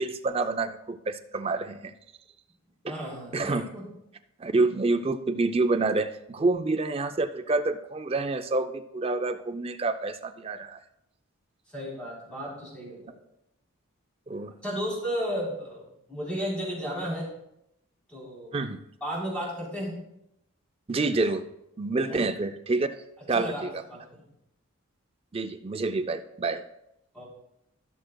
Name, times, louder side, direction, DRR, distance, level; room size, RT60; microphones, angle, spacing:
voice 1, 0.0-1.9 2.8-2.9 3.3-3.7 4.4-10.8 14.3-14.5 18.5-18.8 20.9-21.5 21.8-22.9 23.3-23.7 25.3-26.6, right 3 dB, 25° right, 9 dB, 0.4 m, -27 dB
voice 2, 2.9-3.8 11.7-13.1 14.6-17.3 18.1-18.5 19.0-19.9 22.0-22.2 23.3-24.2 27.1-27.2, equal, 5° left, -6 dB, 3.5 m, -34 dB
15.5 x 6.4 x 2.3 m, 0.83 s
head